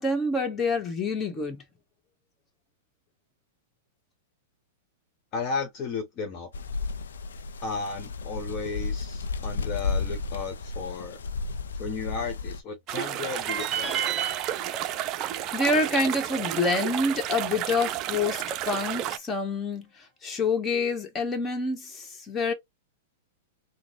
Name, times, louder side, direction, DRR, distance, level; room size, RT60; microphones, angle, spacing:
voice 1, 0.0-1.6 15.5-22.5, left 2 dB, 20° left, 1.3 m, -27 dB
voice 2, 5.3-6.5 7.6-11.2 11.8-14.0, left 4 dB, 40° left, 1.2 m, -34 dB
sound 1, 6.5-12.6, left 4 dB, 85° left, 0.5 m, -33 dB
sound 2, 12.9-19.2, right 12 dB, 40° right, 0.4 m, -32 dB
sound 3, 13.5-16.6, right 9 dB, 20° right, 2.0 m, -34 dB
3.9 x 2.1 x 3.1 m
hypercardioid pair, 115°, 0 cm